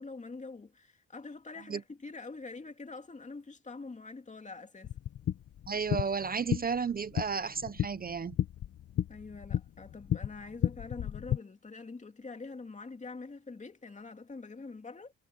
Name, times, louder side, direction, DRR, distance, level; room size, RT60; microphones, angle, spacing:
voice 1, 0.0-4.9 9.1-15.1, left 3 dB, 25° left, 2.7 m, -45 dB
sound 1, 4.8-11.4, left 10 dB, 50° left, 0.8 m, -34 dB
voice 2, 5.7-8.4, right 5 dB, 30° right, 0.7 m, -33 dB
cardioid pair, 90°, 30 cm